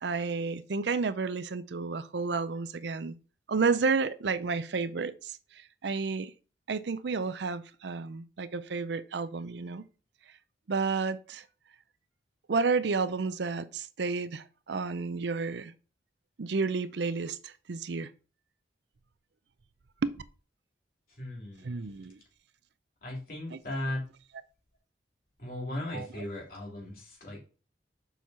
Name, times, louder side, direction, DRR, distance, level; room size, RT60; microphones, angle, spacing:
voice 1, 0.0-3.2 3.5-6.3 6.7-9.9 10.7-11.4 12.5-15.7 16.4-18.1 20.0-20.1 21.6-22.2 23.5-23.6 25.9-26.1, right 4 dB, 70° right, 0.5 m, -31 dB
voice 2, 21.2-21.8 23.0-24.0 25.4-27.4, left 1 dB, 50° left, 3.1 m, -37 dB
7.0 x 4.5 x 5.6 m
head